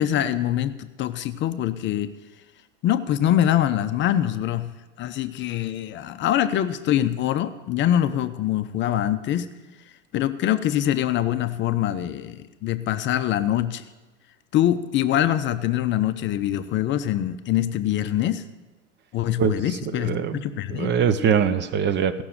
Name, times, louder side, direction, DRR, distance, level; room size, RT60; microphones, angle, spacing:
voice 1, 0.0-2.1 2.8-9.5 10.1-13.8 14.5-18.4 19.1-20.9, left 11 dB, 30° left, 10 dB, 0.6 m, -24 dB
voice 2, 19.4-20.4 20.7-22.2, right 7 dB, 30° right, 12 dB, 0.6 m, -23 dB
16.5 x 6.1 x 6.5 m, 1.2 s
hypercardioid pair, 90°, 38 cm